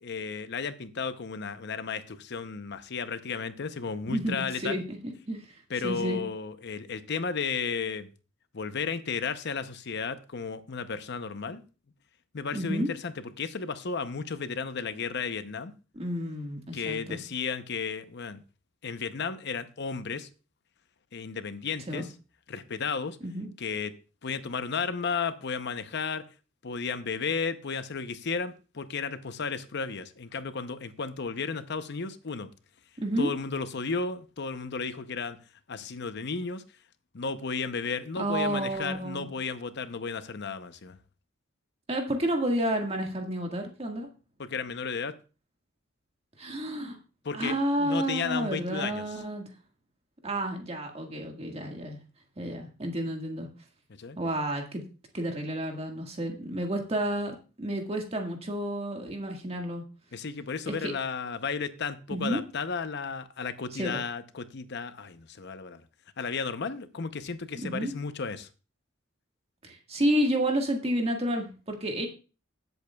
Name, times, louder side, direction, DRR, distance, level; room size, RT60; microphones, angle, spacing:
voice 1, 0.0-4.8 5.7-8.1 8.5-11.6 12.3-15.7 16.7-18.4 18.8-20.3 21.1-22.1 22.5-23.2 23.6-23.9 24.2-26.2 26.6-32.5 33.2-35.4 35.7-36.6 37.1-41.0 44.4-45.1 47.2-49.2 54.0-54.2 60.1-65.8 66.2-68.5, left 5 dB, 55° left, 11 dB, 0.7 m, -33 dB
voice 2, 4.1-5.4 5.8-6.2 12.5-12.9 15.9-17.2 21.9-22.1 23.2-23.5 33.0-33.3 38.2-39.3 41.9-44.1 46.4-47.0 47.3-49.4 50.2-52.0 52.4-53.5 54.1-54.8 55.1-59.8 60.8-60.9 62.1-62.4 63.7-64.0 67.6-67.9 69.6-72.1, right 1 dB, 30° right, 2 dB, 1.7 m, -30 dB
17.0 x 8.1 x 2.3 m, 0.33 s
head